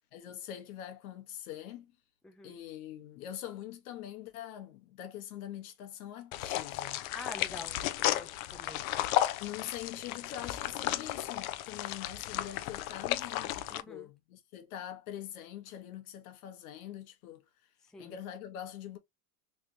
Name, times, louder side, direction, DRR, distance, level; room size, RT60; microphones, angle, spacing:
voice 1, 0.1-1.9 2.4-7.1 9.4-17.7 18.0-19.0, left 11 dB, 90° left, 1.2 m, -44 dB
voice 2, 2.2-2.6 7.1-8.8 13.7-14.1 17.8-18.2, left 3 dB, ahead, 0.3 m, -47 dB
sound 1, 6.3-13.8, left 14 dB, 75° left, 0.6 m, -34 dB
3.4 x 3.0 x 2.7 m
supercardioid pair, 145°, 42 cm